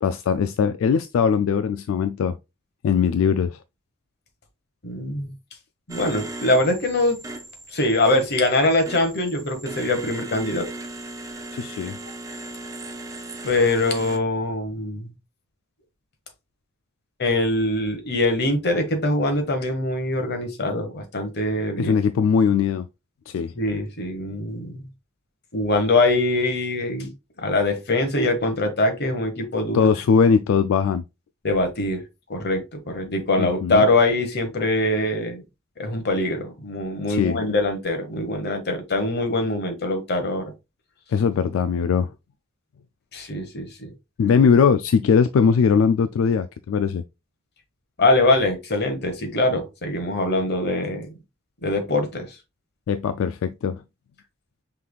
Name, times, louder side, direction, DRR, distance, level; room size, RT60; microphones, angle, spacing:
voice 1, 0.0-2.4 2.8-3.6 11.5-12.0 21.8-22.9 23.3-23.5 29.7-31.0 33.4-33.8 37.1-37.4 41.1-42.1 44.2-47.0 52.9-53.8, left 6 dB, 75° left, 0.3 m, -20 dB
voice 2, 4.8-5.3 5.9-7.2 7.7-10.7 13.4-15.1 17.2-21.9 23.6-24.8 25.5-27.1 27.4-29.9 31.4-32.0 32.3-35.4 35.8-40.5 43.1-43.9 48.0-51.1 51.6-52.3, left 2 dB, 55° left, 1.1 m, -23 dB
sound 1, 5.9-14.2, right 2 dB, 15° right, 0.5 m, -37 dB
5.6 x 3.3 x 2.3 m
head